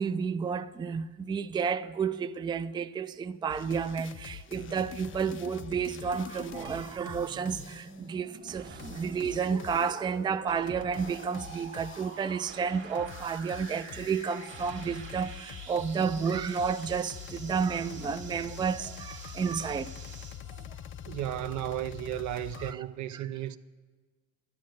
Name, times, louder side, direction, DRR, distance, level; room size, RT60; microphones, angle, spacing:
voice 1, 0.0-19.9 20.6-20.7 22.6-22.8 23.1-23.3, right 6 dB, 15° right, 0.3 m, -31 dB
sound 1, 3.5-8.0 8.7-10.1 10.7-12.3 12.8-22.7, left 9 dB, 45° left, 0.5 m, -45 dB
sound 2, 6.5-20.4, right 5 dB, 40° right, 1.7 m, -47 dB
voice 2, 21.1-23.6, right 12 dB, 75° right, 0.6 m, -34 dB
12.0 x 9.6 x 8.7 m
cardioid pair, 130°, 30 cm